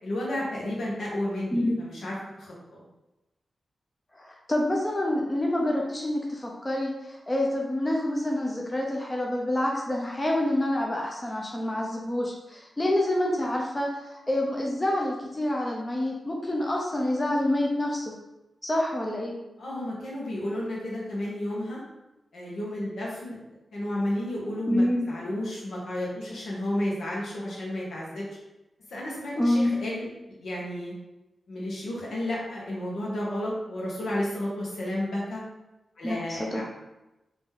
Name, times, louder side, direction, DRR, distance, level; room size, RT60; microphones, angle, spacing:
voice 1, 0.0-2.8 19.6-21.8 22.3-23.4 23.7-28.3 28.9-30.1 30.4-30.9 31.5-35.4 36.0-36.6, left 1 dB, 80° left, -5 dB, 1.4 m, -32 dB
voice 2, 4.1-18.0 18.6-19.4 24.7-25.2 29.4-29.7 36.0-36.6, left 1 dB, 15° left, -1 dB, 0.5 m, -27 dB
3.8 x 3.0 x 3.7 m, 0.99 s
wide cardioid pair, 155°, 0 cm